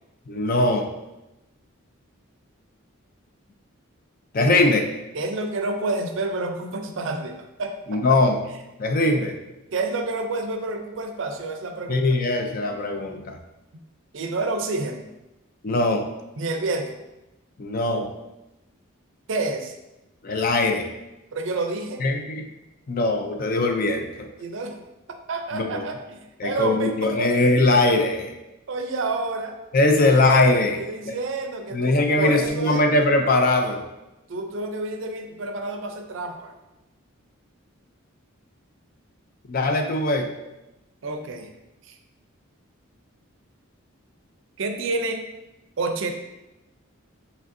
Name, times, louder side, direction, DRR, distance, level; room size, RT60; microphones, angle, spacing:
voice 1, 0.3-0.9 4.3-4.8 7.9-8.4 8.8-9.3 11.9-13.4 15.6-16.1 17.6-18.1 20.2-20.9 22.0-22.5 22.9-24.3 25.5-25.8 26.4-28.3 29.7-30.8 31.1-31.2 31.7-33.8 39.5-40.3, left 2 dB, 40° left, 4 dB, 0.4 m, -21 dB
voice 2, 5.1-8.2 9.7-12.2 14.1-15.0 16.4-16.9 19.3-19.7 21.3-22.0 24.4-24.7 25.3-27.3 28.7-29.6 30.6-32.8 34.3-36.5 41.0-41.5 41.8-42.0 44.6-45.2 45.8-46.1, right 3 dB, 60° right, 5 dB, 0.5 m, -29 dB
5.1 x 3.3 x 2.6 m, 0.98 s
head